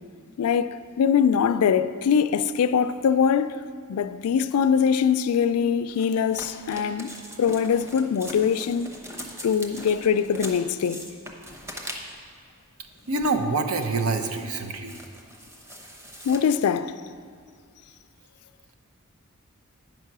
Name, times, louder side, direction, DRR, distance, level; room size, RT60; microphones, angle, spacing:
voice 1, 0.4-3.6 3.9-7.1 7.4-8.9 9.4-11.0 16.2-16.9, left 7 dB, 80° left, 0.3 m, -22 dB
sound 1, 5.9-12.3 12.9-13.4 13.8-16.4, equal, 10° right, 0.8 m, -41 dB
voice 2, 13.1-15.0, right 3 dB, 85° right, 0.7 m, -26 dB
9.1 x 5.6 x 6.0 m
head